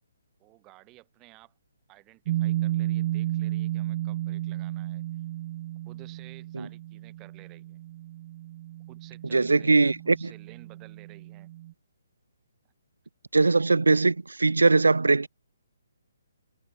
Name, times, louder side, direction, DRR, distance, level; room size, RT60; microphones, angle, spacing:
voice 1, 0.4-1.5 1.9-5.0 5.9-7.8 8.9-11.5, right 21 dB, 20° right, 7.5 m, -53 dB
sound 1, 2.3-11.7, right 15 dB, 35° right, 2.6 m, -33 dB
voice 2, 9.3-10.3 13.3-15.3, right 3 dB, 90° right, 0.6 m, -21 dB
hypercardioid pair, 145°, 0 cm